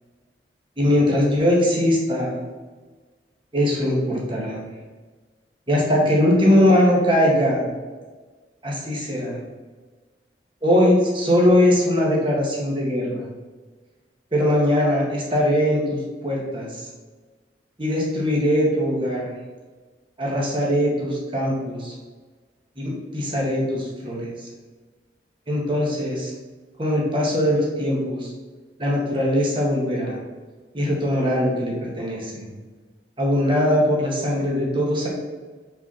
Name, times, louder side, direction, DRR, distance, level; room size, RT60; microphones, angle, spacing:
voice 1, 0.8-2.3 3.5-4.6 5.7-7.7 8.6-9.4 10.6-13.3 14.3-16.0 16.2-16.9 17.8-19.3 20.2-21.9 22.8-24.3 25.5-26.3 26.8-28.3 28.8-30.2 30.7-32.5 33.2-35.1, left 1 dB, 30° right, -3 dB, 1.7 m, -21 dB
5.9 x 4.4 x 5.6 m, 1.4 s
head